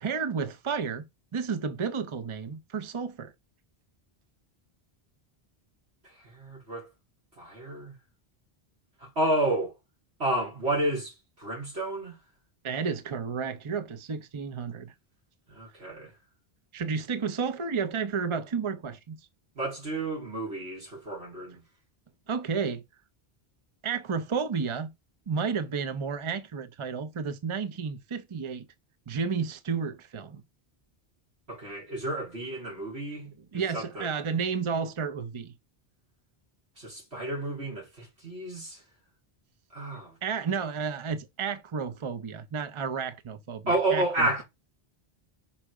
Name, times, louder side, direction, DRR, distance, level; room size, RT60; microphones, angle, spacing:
voice 1, 0.0-1.1 1.3-3.3 12.6-14.9 16.7-19.2 22.3-22.8 23.8-24.9 25.3-28.7 29.1-30.4 33.5-35.5 40.2-44.3, right 6 dB, 35° right, 0.7 m, -31 dB
voice 2, 6.0-6.9 7.4-7.9 9.0-9.7 10.2-12.2 15.5-16.1 19.6-21.6 31.5-34.1 36.8-38.8 39.7-40.2 43.7-44.4, right 1 dB, 90° right, 4.3 m, -31 dB
5.9 x 4.5 x 5.0 m
omnidirectional pair, 1.0 m